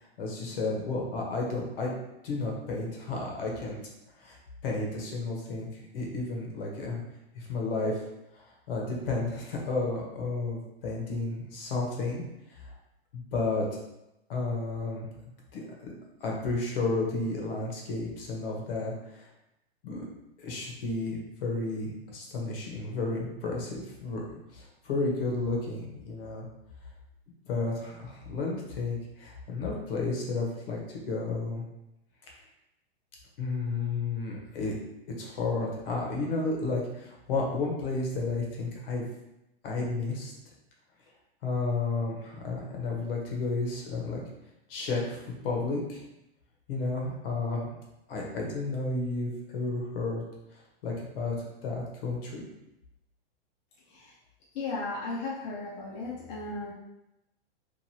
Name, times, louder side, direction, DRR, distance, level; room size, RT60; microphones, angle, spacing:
voice 1, 0.2-2.0 2.2-3.8 4.2-4.4 4.6-7.0 7.3-8.0 8.3-12.2 12.5-12.7 13.1-13.6 14.3-15.1 15.5-15.9 16.2-19.3 19.8-20.0 20.4-24.2 24.5-26.4 27.5-30.8 31.1-31.6 33.4-34.8 35.2-39.0 39.6-40.3 41.4-44.2 44.7-46.0 46.7-47.7 48.1-50.2 50.8-51.3 51.6-52.4, left 3 dB, 60° left, -1 dB, 1.0 m, -32 dB
voice 2, 54.5-56.7, left 3 dB, 40° left, -6 dB, 0.6 m, -35 dB
3.0 x 2.5 x 2.7 m, 0.90 s
supercardioid pair, 155°, 32 cm